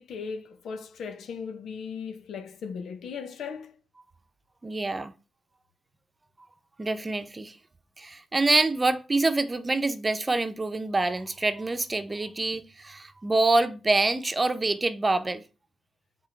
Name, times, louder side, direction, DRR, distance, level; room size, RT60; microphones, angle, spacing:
voice 1, 0.0-3.7, left 6 dB, 85° left, 1.1 m, -37 dB
voice 2, 4.6-5.1 6.4-6.5 6.8-7.6 8.0-15.4, right 2 dB, 30° right, 0.9 m, -26 dB
7.4 x 3.9 x 4.6 m
cardioid pair, 75°, 0 cm